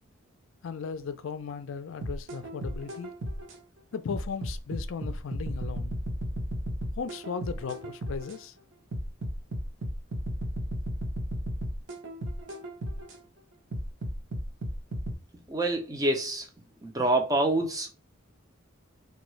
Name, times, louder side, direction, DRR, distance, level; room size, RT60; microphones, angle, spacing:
voice 1, 0.6-3.1 3.9-5.9 7.0-8.5, left 6 dB, 65° left, 0.4 m, -36 dB
sound 1, 2.0-3.6 4.1-8.4 8.9-13.2 13.7-15.1, equal, 60° right, 0.7 m, -34 dB
voice 2, 15.5-16.5 16.8-17.9, right 2 dB, 15° right, 0.4 m, -26 dB
3.4 x 2.3 x 3.1 m
head